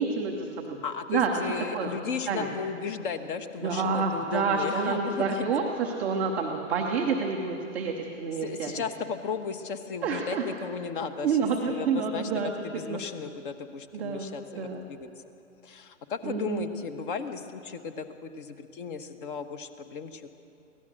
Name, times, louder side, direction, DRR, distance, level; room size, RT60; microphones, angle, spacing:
voice 1, 0.0-0.8 1.1-1.3 1.7-1.9 2.3-2.5 3.6-8.7 10.0-10.4 11.2-12.6 12.9-13.0 13.9-14.8 16.2-16.7, right 5 dB, 5° right, -7 dB, 0.4 m, -28 dB
voice 2, 0.8-5.5 8.4-11.4 11.6-12.3 12.6-15.1 15.6-20.3, left 6 dB, 40° left, 10 dB, 1.3 m, -35 dB
24.0 x 17.0 x 6.6 m, 2.6 s
hypercardioid pair, 140°, 40 cm